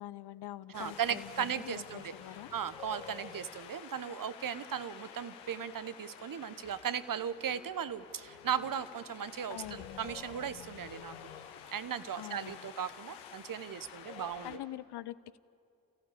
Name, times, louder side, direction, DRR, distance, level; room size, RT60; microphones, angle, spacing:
voice 1, 0.0-2.5 9.5-9.8 12.2-12.7 14.2-15.4, left 13 dB, 55° left, 16 dB, 0.8 m, -45 dB
Wind, 0.7-14.6, left 8 dB, 85° left, 1.3 m, -50 dB
voice 2, 0.7-2.1 2.5-11.1 11.7-14.6, right 8 dB, 45° right, 14 dB, 1.0 m, -37 dB
30.0 x 14.5 x 8.5 m, 2.5 s
hypercardioid pair, 45°, 48 cm